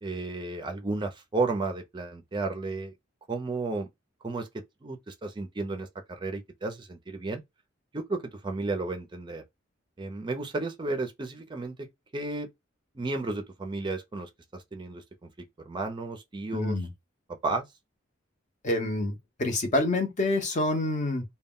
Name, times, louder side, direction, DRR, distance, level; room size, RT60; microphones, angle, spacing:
voice 1, 0.0-2.9 3.3-3.9 4.2-4.5 4.8-7.4 7.9-9.4 10.0-11.7 12.1-12.5 12.9-15.3 15.6-16.8 17.4-17.6, right 3 dB, 25° right, 0.4 m, -33 dB
voice 2, 16.5-16.9 18.6-21.2, left 2 dB, 40° left, 0.7 m, -27 dB
2.2 x 2.1 x 3.5 m
head